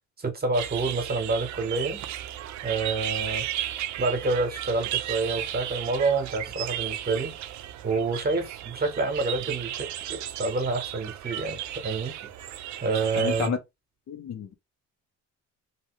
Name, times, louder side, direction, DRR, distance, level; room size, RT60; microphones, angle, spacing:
voice 1, 0.2-2.0 2.6-3.5 4.0-7.3 7.8-12.2 12.8-13.5, right 3 dB, 30° right, 1.0 m, -28 dB
sound 1, 0.5-13.5, right 12 dB, 70° right, 0.5 m, -34 dB
voice 2, 13.2-13.6 14.1-14.5, left 7 dB, 60° left, 0.9 m, -30 dB
2.9 x 2.7 x 3.1 m
cardioid pair, 90°, 30 cm